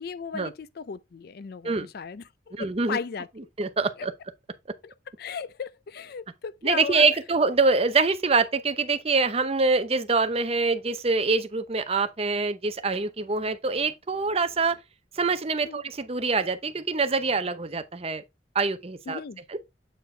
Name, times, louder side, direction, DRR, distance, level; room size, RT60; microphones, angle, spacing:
voice 1, 0.0-3.5 4.0-4.1 4.8-7.1 15.6-15.8 19.1-19.4, left 6 dB, 55° left, 0.4 m, -36 dB
voice 2, 2.5-3.0 3.6-4.1 6.6-14.8 15.2-18.2 18.5-19.2 19.5-19.6, right 4 dB, 35° right, 0.7 m, -25 dB
8.1 x 4.5 x 3.3 m
head